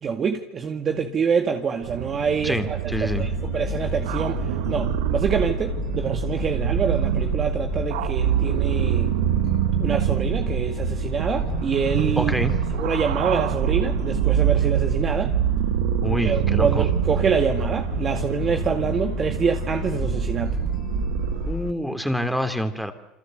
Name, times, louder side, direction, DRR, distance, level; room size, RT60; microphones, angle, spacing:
voice 1, 0.0-4.4 4.7-9.1 9.8-12.3 12.7-15.3 16.2-20.5, right 6 dB, 35° right, 5 dB, 2.1 m, -26 dB
sound 1, 1.8-21.5, right 14 dB, 90° right, 1.0 m, -25 dB
voice 2, 2.4-3.3 12.2-12.5 16.0-16.8 21.5-22.9, equal, ahead, 8 dB, 3.1 m, -26 dB
sound 2, 2.9-21.7, left 11 dB, 50° left, 0.9 m, -32 dB
28.5 x 25.5 x 7.8 m, 0.90 s
supercardioid pair, 125°, 0 cm